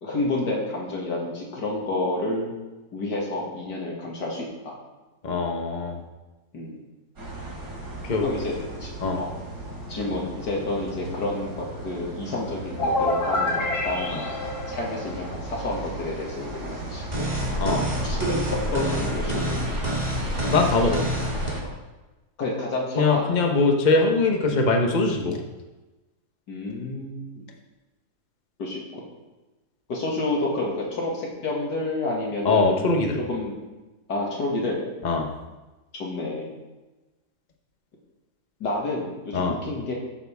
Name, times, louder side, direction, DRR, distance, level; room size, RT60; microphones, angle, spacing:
voice 1, 0.0-2.5 2.9-4.7 6.5-6.8 8.2-8.5 8.8-9.3 9.9-17.1 18.0-19.6 21.4-21.7 22.4-23.5 26.5-27.4 28.6-29.0 29.9-32.9 33.3-33.5 34.1-34.8 35.9-36.6 38.6-39.9, left 2 dB, 90° left, -2 dB, 2.8 m, -29 dB
voice 2, 5.2-6.0 8.0-8.2 9.0-9.2 17.6-17.9 20.5-21.0 22.9-25.4 32.4-33.2 35.0-35.3 39.3-39.5, left 3 dB, 30° left, 2 dB, 1.2 m, -22 dB
sound 1, 7.2-21.6, right 1 dB, 75° right, 3.8 m, -36 dB
sound 2, 12.8-15.6, left 2 dB, 65° left, 2.1 m, -27 dB
sound 3, 17.1-21.5, equal, 25° right, 2.0 m, -27 dB
13.5 x 8.4 x 3.6 m, 1.1 s
omnidirectional pair, 1.8 m